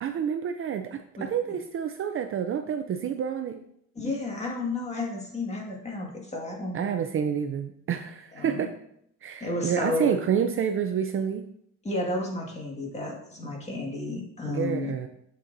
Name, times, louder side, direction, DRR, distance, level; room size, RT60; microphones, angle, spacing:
voice 1, 0.0-3.6 6.7-8.7 9.2-11.4 14.5-15.1, right 8 dB, 40° right, 7 dB, 0.5 m, -28 dB
voice 2, 4.0-6.9 8.3-8.6 9.4-10.2 11.8-14.9, left 2 dB, 20° left, -1 dB, 1.9 m, -32 dB
7.5 x 6.6 x 2.7 m, 0.70 s
cardioid pair, 115°, 33 cm